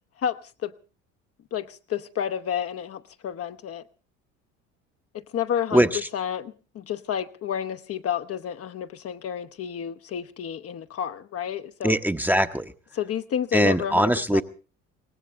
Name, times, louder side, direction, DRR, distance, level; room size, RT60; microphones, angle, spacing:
voice 1, 0.2-0.7 1.5-3.8 5.1-12.0 12.9-14.4, left 9 dB, 40° left, 0.8 m, -30 dB
voice 2, 11.8-12.7 13.5-14.4, equal, 5° right, 0.9 m, -21 dB
23.5 x 18.0 x 3.4 m
hypercardioid pair, 60°, 38 cm